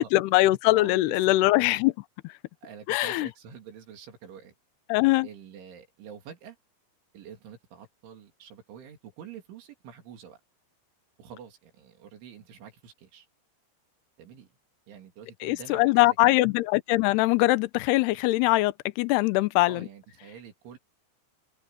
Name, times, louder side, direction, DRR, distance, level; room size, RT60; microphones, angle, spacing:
voice 1, 0.0-1.9 2.9-3.3 4.9-5.3 15.4-19.9, left 19 dB, 80° left, 2.4 m, -22 dB
voice 2, 0.7-1.4 2.6-4.6 5.2-6.6 7.1-10.4 11.2-13.3 14.2-14.5 14.9-16.2 19.6-20.8, right 7 dB, 70° right, 5.4 m, -47 dB
omnidirectional pair, 5.7 m